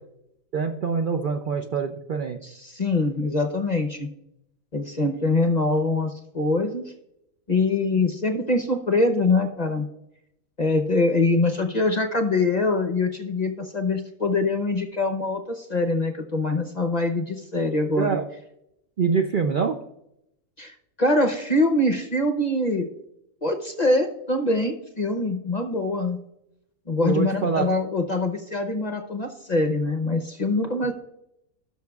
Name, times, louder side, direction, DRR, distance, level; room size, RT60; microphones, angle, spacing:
voice 1, 0.5-2.4 18.0-18.3 19.0-19.8 27.0-27.7, right 5 dB, 60° right, 4 dB, 0.5 m, -25 dB
voice 2, 2.4-4.1 4.7-6.9 7.5-9.9 10.6-18.2 20.6-22.9 23.4-26.2 26.9-30.9, left 2 dB, 40° left, 6 dB, 0.7 m, -24 dB
17.5 x 6.3 x 2.3 m, 0.81 s
omnidirectional pair, 1.5 m